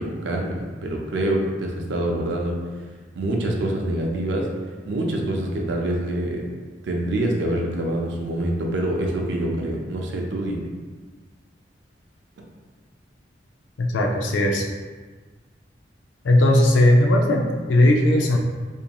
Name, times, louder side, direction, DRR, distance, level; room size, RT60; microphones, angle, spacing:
voice 1, 0.0-2.5 3.2-4.5 4.9-6.4 6.8-10.6, right 1 dB, 70° right, 0 dB, 0.4 m, -25 dB
voice 2, 13.8-14.6 16.2-18.4, left 1 dB, 80° left, 0 dB, 0.4 m, -18 dB
2.8 x 2.5 x 2.2 m, 1.4 s
head